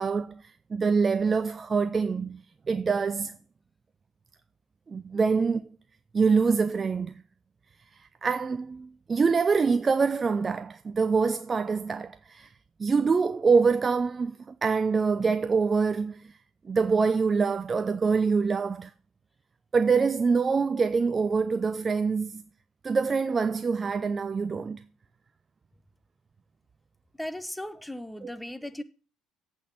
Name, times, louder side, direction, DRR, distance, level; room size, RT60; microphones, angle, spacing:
voice 1, 0.0-3.4 4.9-5.7 6.1-7.2 8.0-12.5 12.8-16.4 16.7-18.9 19.7-22.5 22.8-24.8 28.2-28.3, right 5 dB, 30° right, 0.5 m, -25 dB
voice 2, 27.2-28.8, left 1 dB, 5° left, 1.1 m, -37 dB
8.3 x 6.2 x 6.6 m
hypercardioid pair, 55°, 0 cm